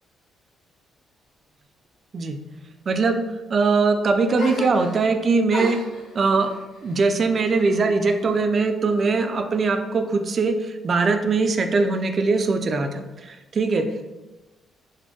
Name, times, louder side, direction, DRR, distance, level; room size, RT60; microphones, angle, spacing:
voice 1, 2.9-5.8 6.1-6.5 6.8-14.0, right 4 dB, 45° right, 7 dB, 0.3 m, -21 dB
sound 1, 4.4-5.2 5.5-8.2 8.5-9.4, left 1 dB, 85° left, 0.8 m, -36 dB
4.2 x 2.0 x 2.9 m, 1.1 s
cardioid pair, 90°, 0 cm